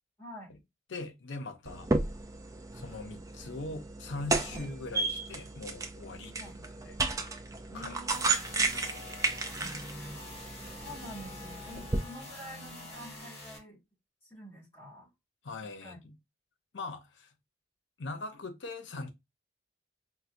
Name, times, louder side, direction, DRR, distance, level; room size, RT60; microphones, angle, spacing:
voice 1, 0.2-0.5 4.5-4.7 6.4-6.6 7.7-9.0 9.6-9.8 10.7-13.8 14.2-15.1 15.8-16.0, equal, 15° left, 2.0 m, -48 dB
voice 2, 0.9-1.9 2.7-6.4 6.8-7.0 7.7-8.0 8.7-8.9 15.4-16.2 16.7-17.3 18.0-19.1, left 3 dB, 70° left, 0.6 m, -41 dB
sound 1, 1.7-12.0, right 3 dB, 15° right, 0.3 m, -34 dB
sound 2, 8.1-13.6, left 2 dB, 30° left, 1.1 m, -45 dB
4.3 x 2.1 x 2.5 m
head